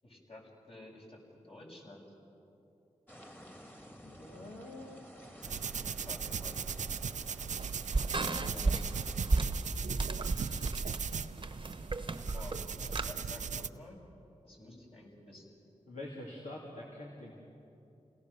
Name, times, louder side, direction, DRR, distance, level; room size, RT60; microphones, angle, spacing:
voice 1, 0.0-2.1 6.1-6.6 8.3-8.8 12.3-14.0 14.4-15.4, left 1 dB, 50° left, -2 dB, 6.5 m, -50 dB
sound 1, 3.1-9.4, equal, 15° left, 2.6 m, -53 dB
voice 2, 4.0-5.1 15.9-17.4, left 1 dB, 75° left, -4 dB, 2.8 m, -45 dB
sound 2, 5.4-13.7, right 6 dB, 75° right, 0.5 m, -38 dB
sound 3, 6.5-13.1, right 3 dB, 40° right, 1.1 m, -35 dB
28.5 x 18.0 x 6.7 m, 2.8 s
cardioid pair, 40°, 13 cm